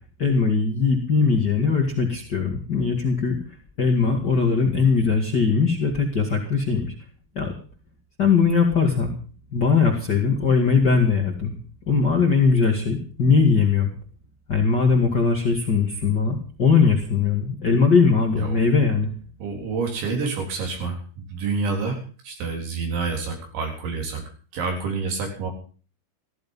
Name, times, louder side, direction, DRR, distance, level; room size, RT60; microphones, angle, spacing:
voice 1, 0.2-3.4 3.8-6.9 7.3-7.5 8.2-9.1 9.5-11.6 11.9-13.9 14.5-19.1, left 5 dB, 80° left, 1 dB, 0.9 m, -20 dB
voice 2, 19.4-21.0 21.3-24.2 24.5-25.5, right 4 dB, 65° right, 3 dB, 6.1 m, -28 dB
15.0 x 14.5 x 5.4 m, 0.39 s
omnidirectional pair, 5.9 m